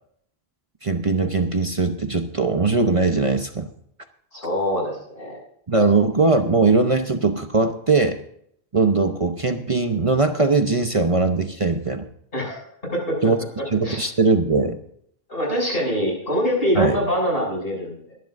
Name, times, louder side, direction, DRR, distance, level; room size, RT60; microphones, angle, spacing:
voice 1, 0.8-3.7 5.7-8.2 8.7-12.0 13.2-13.4 13.7-14.8 16.8-17.0, right 3 dB, 35° right, 6 dB, 0.9 m, -20 dB
voice 2, 4.3-5.4 12.3-12.6 12.9-13.2 13.6-14.0 15.3-18.1, equal, 70° left, -1 dB, 6.9 m, -24 dB
22.5 x 11.5 x 2.6 m, 0.67 s
omnidirectional pair, 1.0 m